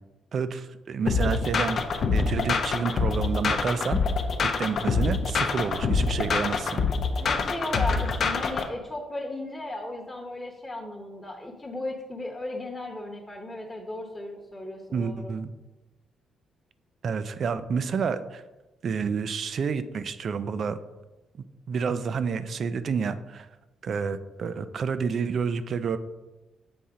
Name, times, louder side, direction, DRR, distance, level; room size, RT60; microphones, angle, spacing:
voice 1, 0.3-1.9 2.1-4.0 4.4-6.8 14.9-15.5 17.0-18.4 18.8-20.8 21.7-23.5 23.8-26.0, right 6 dB, 55° right, 12 dB, 0.4 m, -29 dB
sound 1, 1.1-8.7, left 4 dB, 50° left, 0.6 m, -25 dB
voice 2, 7.2-15.3, left 1 dB, 10° left, -2 dB, 1.0 m, -35 dB
7.1 x 4.2 x 3.7 m, 1.1 s
cardioid pair, 90°, 0 cm